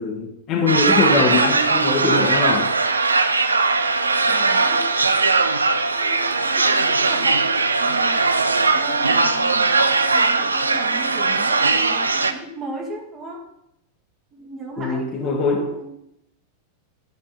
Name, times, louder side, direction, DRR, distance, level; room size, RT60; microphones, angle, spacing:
voice 1, 0.0-2.7 14.8-15.6, left 3 dB, 40° left, 2 dB, 1.5 m, -21 dB
sound 1, 0.7-12.3, right 3 dB, 75° right, 0.4 m, -19 dB
voice 2, 4.0-5.6 5.8-8.3 8.7-13.5 14.3-15.9, right 2 dB, 30° right, 1 dB, 1.8 m, -36 dB
11.0 x 4.2 x 5.2 m, 0.79 s
figure-of-eight pair, 90°, 0 cm